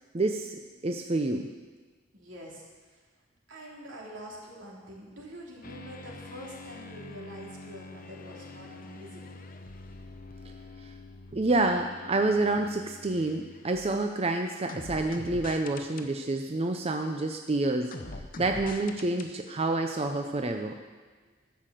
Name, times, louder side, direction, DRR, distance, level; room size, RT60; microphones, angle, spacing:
voice 1, 0.1-1.5 11.3-18.0 18.4-20.8, right 2 dB, 30° right, 4 dB, 0.6 m, -28 dB
voice 2, 0.8-1.1 2.1-3.2 3.5-9.4, equal, 85° right, -3 dB, 3.2 m, -46 dB
sound 1, 5.6-14.2 14.7-16.1 17.9-19.3, left 2 dB, 50° left, 0.8 m, -45 dB
12.5 x 6.7 x 7.6 m, 1.4 s
head